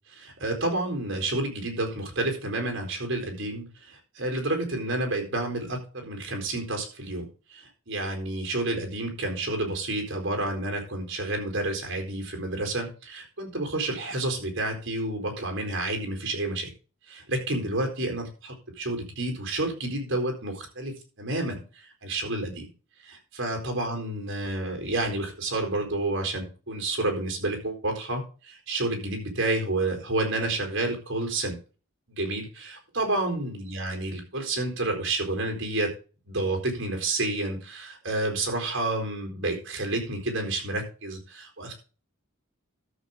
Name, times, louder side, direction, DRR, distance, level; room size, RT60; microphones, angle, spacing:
voice 1, 0.1-16.7 17.1-21.6 22.0-22.7 23.0-31.6 32.1-35.9 36.3-41.7, right 2 dB, 60° right, 3 dB, 4.2 m, -30 dB
13.0 x 7.2 x 3.7 m, 0.35 s
head